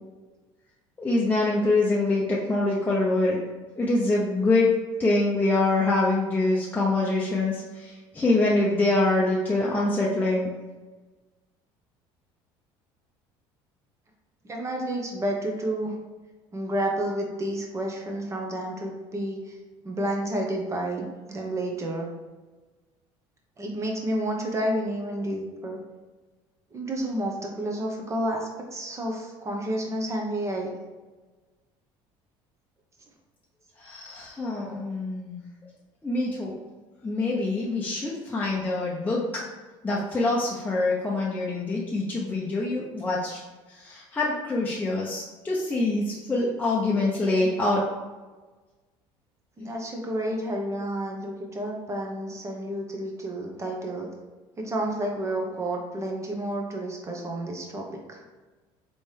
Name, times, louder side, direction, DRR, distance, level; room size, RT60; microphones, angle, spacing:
voice 1, 1.0-3.4 3.8-4.7 5.0-10.5 33.8-35.4 36.0-36.6 37.0-39.4 39.8-43.4 43.7-47.9, left 2 dB, 15° left, -5 dB, 0.7 m, -25 dB
voice 2, 14.4-15.9 16.5-19.6 19.8-22.1 23.6-25.8 26.7-30.7 49.6-54.1 54.6-58.2, right 1 dB, 25° right, 1 dB, 1.0 m, -30 dB
4.3 x 3.3 x 3.3 m, 1.3 s
supercardioid pair, 100°, 11 cm